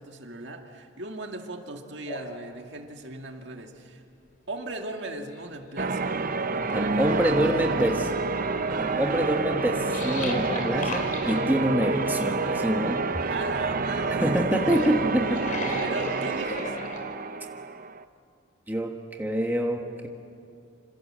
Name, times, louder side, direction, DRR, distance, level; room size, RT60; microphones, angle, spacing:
voice 1, 0.0-4.0 4.5-6.2 6.5-8.2 13.3-14.9 15.8-16.8, right 2 dB, 55° right, 3 dB, 2.1 m, -38 dB
sound 1, 2.1-2.3 4.1-4.2 4.6-5.7 6.2-6.3 7.0-8.1 9.9-11.6 14.4-17.0, left 1 dB, 40° left, 3.6 m, -35 dB
Church bell, 5.8-18.0, right 3 dB, 40° right, 0.8 m, -28 dB
voice 2, 6.7-8.0 8.7-13.2 14.2-15.8 18.7-20.1, equal, 10° right, 2 dB, 1.4 m, -26 dB
27.5 x 26.5 x 7.5 m, 2.5 s
head